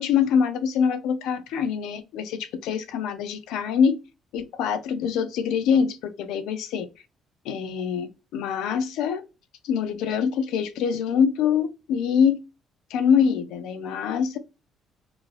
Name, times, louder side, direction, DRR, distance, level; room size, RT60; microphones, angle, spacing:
voice 1, 0.0-4.0 4.3-6.9 7.5-9.2 9.6-12.4 12.9-14.4, left 7 dB, 90° left, 0.5 m, -24 dB
2.8 x 2.5 x 3.1 m
cardioid pair, 120°, 0 cm